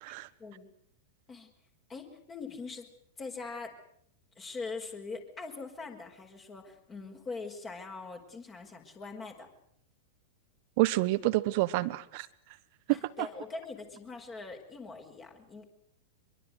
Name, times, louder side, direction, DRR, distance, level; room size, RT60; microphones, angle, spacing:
voice 1, 0.1-0.7 1.3-1.5 1.9-2.9 3.2-3.7 4.4-9.5 12.9-15.6, left 4 dB, 20° left, 3 dB, 5.1 m, -42 dB
voice 2, 10.8-12.3 12.9-13.3, right 19 dB, 45° right, 15 dB, 1.4 m, -28 dB
25.0 x 23.0 x 8.1 m, 0.70 s
figure-of-eight pair, 95°, 0 cm